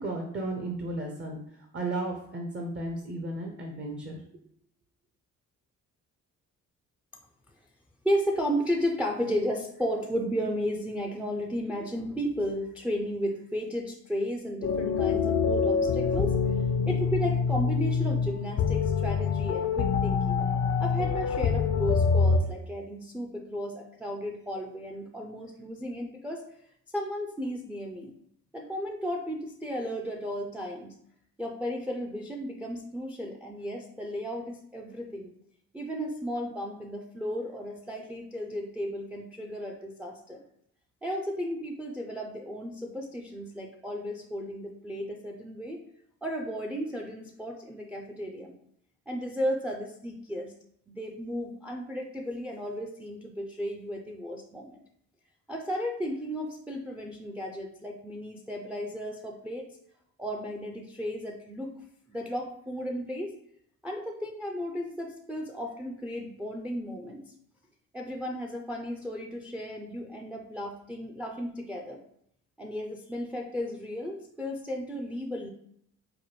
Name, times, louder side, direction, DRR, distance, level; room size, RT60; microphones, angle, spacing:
voice 1, 0.0-1.4 1.7-4.2, right 2 dB, 40° right, 1 dB, 0.6 m, -34 dB
voice 2, 8.0-16.4 16.9-20.4 20.8-26.4 26.9-28.2 28.5-30.9 31.4-35.3 35.7-40.4 41.0-45.8 46.2-48.5 49.1-50.5 50.9-54.8 55.5-59.7 60.2-61.7 62.1-63.3 63.8-67.3 67.9-72.0 72.6-75.5, equal, 5° right, 2 dB, 0.4 m, -34 dB
sound 1, 14.6-22.4, left 5 dB, 60° left, 0.4 m, -26 dB
4.8 x 2.2 x 3.1 m, 0.69 s
cardioid pair, 90°, 30 cm